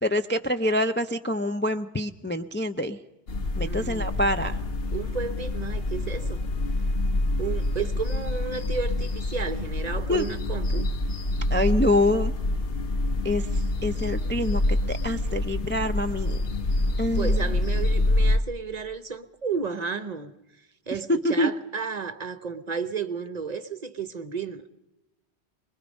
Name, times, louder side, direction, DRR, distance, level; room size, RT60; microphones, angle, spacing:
voice 1, 0.0-3.0 3.6-4.6 10.1-10.3 11.5-12.3 13.2-14.6 14.9-16.4 17.0-17.5 21.2-21.5, left 1 dB, 15° left, 0.4 m, -26 dB
sound 1, 3.3-18.4, left 2 dB, 65° left, 1.2 m, -26 dB
voice 2, 3.6-4.2 4.9-6.4 7.4-10.9 17.1-20.3 20.9-24.7, right 6 dB, 40° right, 0.9 m, -32 dB
24.0 x 21.5 x 5.3 m
omnidirectional pair, 1.1 m